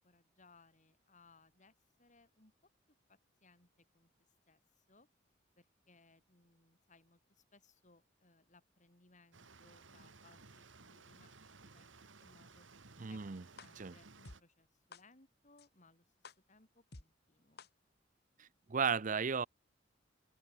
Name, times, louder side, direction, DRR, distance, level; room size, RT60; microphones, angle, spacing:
voice 1, 0.0-2.5 3.1-4.1 4.5-5.1 5.6-12.7 13.1-17.7, left 3 dB, 40° left, 6.0 m, -67 dB
sound 1, 9.3-14.4, right 4 dB, 85° right, 2.2 m, -59 dB
voice 2, 13.0-13.4 13.8-13.9 18.4-19.5, right 6 dB, 45° right, 0.7 m, -35 dB
sound 2, 13.6-13.7 14.2-14.4 14.9-15.0 15.6-15.7 16.2-16.3 16.9-17.0 17.6-17.7, left 3 dB, 60° left, 2.0 m, -51 dB
open air
head